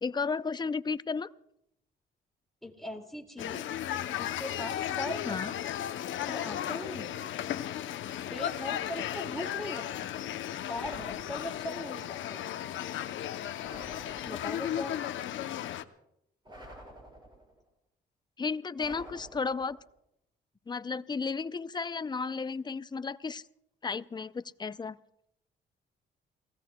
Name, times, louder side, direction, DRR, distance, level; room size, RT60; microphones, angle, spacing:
voice 1, 0.0-1.3 5.3-5.5 18.4-19.8 20.7-23.4 23.8-25.0, left 4 dB, 20° left, 15 dB, 0.5 m, -33 dB
voice 2, 2.6-3.6 4.1-5.4 6.3-7.1 8.3-9.9 10.7-12.0 12.3-12.4 14.3-15.0, left 1 dB, ahead, 1 dB, 2.3 m, -39 dB
sound 1, 3.4-15.8, left 11 dB, 75° left, 0.7 m, -35 dB
sound 2, 10.7-11.8 13.6-14.7 16.5-17.6 18.8-19.9, right 1 dB, 25° right, 4.4 m, -50 dB
29.5 x 17.5 x 2.3 m, 0.78 s
cardioid pair, 90°, 20 cm